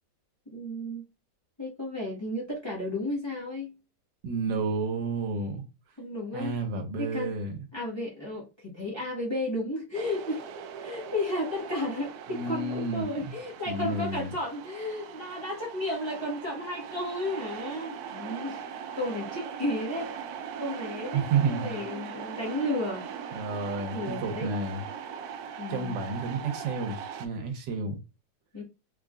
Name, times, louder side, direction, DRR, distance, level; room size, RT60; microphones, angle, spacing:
voice 1, 0.5-1.0 1.6-3.7 6.0-6.6 7.0-7.3 7.7-10.4 10.8-18.6 18.9-20.1 20.6-23.1 23.9-24.5 25.6-26.0 28.5-28.6, left 1 dB, 15° left, 1.4 m, -33 dB
voice 2, 4.2-5.6 6.3-7.6 12.3-13.3 13.7-14.3 21.1-21.8 23.3-24.8 25.7-28.0, right 4 dB, 90° right, 1.6 m, -31 dB
sound 1, 9.9-27.3, right 7 dB, 70° right, 1.0 m, -40 dB
3.8 x 3.6 x 2.4 m
omnidirectional pair, 1.9 m